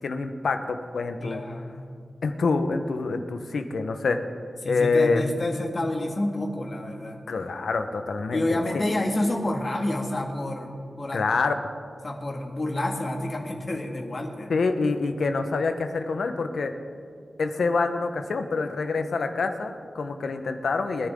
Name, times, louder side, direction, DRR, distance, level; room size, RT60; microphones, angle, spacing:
voice 1, 0.0-1.4 2.2-4.2 4.6-5.2 7.3-8.8 11.1-11.5 14.5-16.7 17.4-21.1, left 4 dB, 85° left, 7 dB, 1.1 m, -26 dB
voice 2, 1.2-1.9 4.6-7.2 8.3-11.2 12.0-14.5, left 1 dB, 45° left, 1 dB, 2.1 m, -29 dB
23.0 x 11.0 x 3.8 m, 2.2 s
wide cardioid pair, 80°, 0 cm